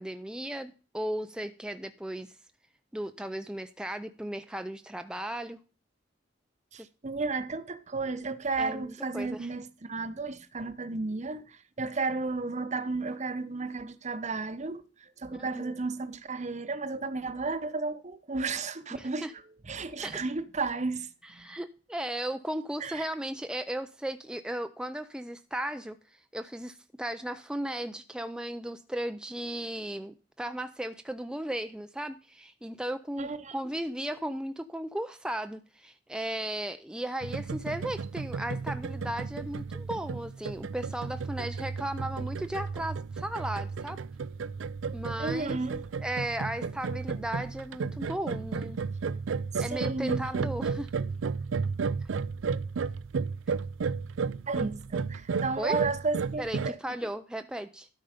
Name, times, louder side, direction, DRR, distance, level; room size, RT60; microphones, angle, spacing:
voice 1, 0.0-2.4 2.9-5.6 6.7-6.9 8.6-9.5 15.3-15.8 18.9-19.3 20.0-20.2 21.2-44.0 44.9-45.6 46.0-48.8 49.6-50.9 52.0-52.1 55.6-55.8 56.4-57.9, right 1 dB, 5° right, 0.4 m, -36 dB
voice 2, 6.7-19.3 19.6-21.5 22.8-23.1 33.2-33.5 45.2-45.8 49.5-50.2 54.5-56.8, right 3 dB, 40° right, 0.9 m, -33 dB
sound 1, 37.2-56.7, right 5 dB, 85° right, 0.5 m, -33 dB
12.5 x 5.5 x 5.0 m
head